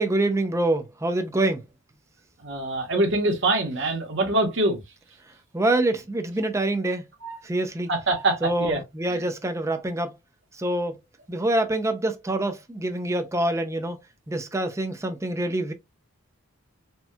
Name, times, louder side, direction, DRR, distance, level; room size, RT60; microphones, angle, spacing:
voice 1, 0.0-1.6 5.5-7.0 7.4-7.9 8.4-10.1 10.5-10.9 11.3-14.0 14.3-15.7, right 2 dB, 15° right, 0.4 m, -25 dB
voice 2, 2.4-4.8 7.2-7.4 7.9-9.3, right 2 dB, 55° right, 1.0 m, -25 dB
4.3 x 2.2 x 2.2 m
head